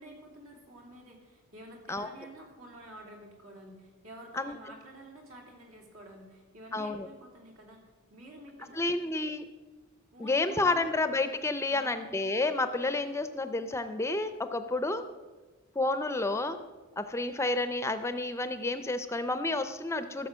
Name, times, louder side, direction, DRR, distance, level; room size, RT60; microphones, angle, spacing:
voice 1, 0.0-9.2 10.1-10.9 11.7-12.2, right 1 dB, 75° right, 0 dB, 3.0 m, -50 dB
voice 2, 6.7-7.1 8.7-9.4 10.2-15.0 15.8-16.6 17.0-20.3, left 2 dB, 15° left, 10 dB, 0.5 m, -30 dB
15.0 x 6.8 x 6.2 m, 1.3 s
head